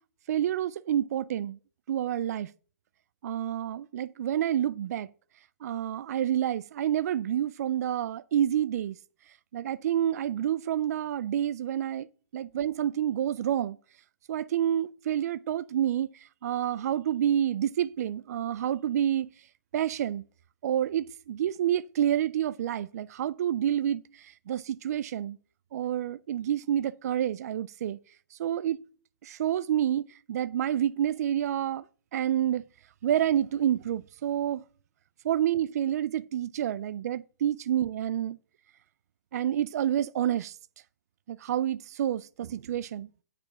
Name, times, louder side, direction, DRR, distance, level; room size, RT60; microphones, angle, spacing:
voice 1, 0.3-1.6 1.9-2.5 3.2-5.1 5.6-9.0 9.5-12.1 12.3-13.8 14.3-19.3 19.7-20.2 20.6-25.4 25.7-28.0 28.3-28.8 29.2-31.8 32.1-32.6 33.0-34.6 35.2-38.4 39.3-40.6 41.3-43.1, right 10 dB, 60° right, 0.4 m, -28 dB
8.5 x 4.9 x 6.0 m
hypercardioid pair, 160°, 9 cm